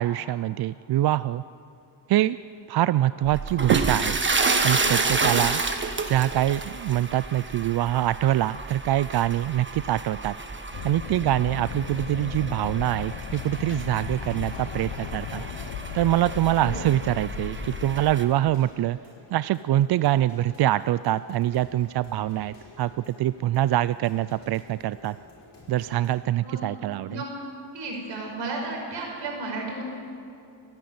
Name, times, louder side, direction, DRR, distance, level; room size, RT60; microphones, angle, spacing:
voice 1, 0.0-1.4 2.1-2.4 2.7-4.2 4.6-5.6 6.1-10.3 10.8-15.4 15.9-19.0 19.3-25.2 25.7-27.1, right 13 dB, 65° right, 16 dB, 0.5 m, -24 dB
sound 1, 3.2-18.2, right 3 dB, 25° right, 1.6 m, -30 dB
sound 2, 8.9-26.2, left 2 dB, 40° left, 6.0 m, -53 dB
Wind, 10.7-18.0, left 9 dB, 80° left, 1.1 m, -36 dB
voice 2, 27.7-29.8, right 3 dB, 90° right, 0 dB, 5.5 m, -33 dB
29.5 x 10.5 x 9.5 m, 2.6 s
cardioid pair, 90°, 42 cm